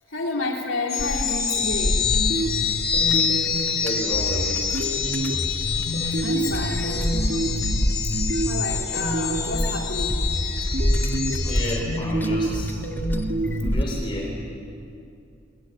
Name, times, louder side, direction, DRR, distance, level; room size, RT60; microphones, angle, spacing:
voice 1, 0.1-2.0 6.2-7.1 8.4-10.3, left 2 dB, 75° left, -1 dB, 3.7 m, -30 dB
sound 1, 0.9-11.8, left 7 dB, 55° left, 3.7 m, -27 dB
sound 2, 1.0-13.8, equal, 10° left, 1.2 m, -28 dB
sound 3, 1.6-3.7 4.1-9.7 10.1-13.7, right 1 dB, 50° right, 3.0 m, -28 dB
voice 2, 3.8-4.6 6.0-6.1 9.6-9.7 11.5-12.9 13.6-14.4, left 1 dB, 25° left, -2 dB, 4.1 m, -31 dB
24.5 x 22.5 x 9.7 m, 2.5 s
head